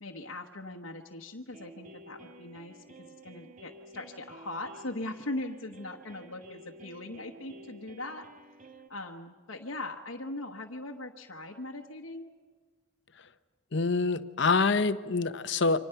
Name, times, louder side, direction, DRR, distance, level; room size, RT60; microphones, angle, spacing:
voice 1, 0.0-8.3 8.9-12.2, left 2 dB, 85° left, 0 dB, 1.1 m, -40 dB
sound 1, 1.5-8.9, right 1 dB, 40° right, 1.3 m, -52 dB
voice 2, 13.7-15.8, left 4 dB, 60° left, 12 dB, 0.9 m, -26 dB
29.0 x 25.0 x 5.8 m, 1.5 s
head